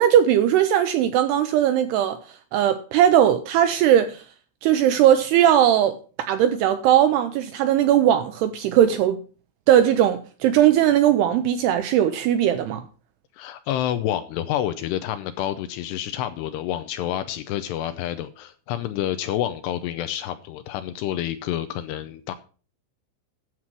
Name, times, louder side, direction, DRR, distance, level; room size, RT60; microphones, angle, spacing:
voice 1, 0.0-2.2 2.5-4.2 4.6-9.2 9.7-12.8, right 10 dB, 85° right, 2.4 m, -19 dB
voice 2, 13.4-22.3, left 12 dB, 80° left, 2.5 m, -28 dB
9.7 x 7.3 x 6.1 m
omnidirectional pair, 5.3 m